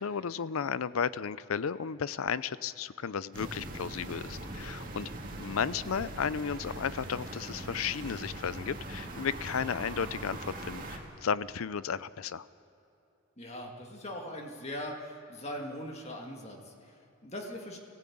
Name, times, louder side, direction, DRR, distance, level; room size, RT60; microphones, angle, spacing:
voice 1, 0.0-5.1 5.4-12.4, left 6 dB, 80° left, 17 dB, 0.5 m, -34 dB
sound 1, 3.3-11.0, right 1 dB, 40° right, 2.1 m, -41 dB
voice 2, 13.4-17.8, left 1 dB, 30° left, 2 dB, 2.0 m, -41 dB
20.5 x 15.5 x 8.6 m, 2.8 s
head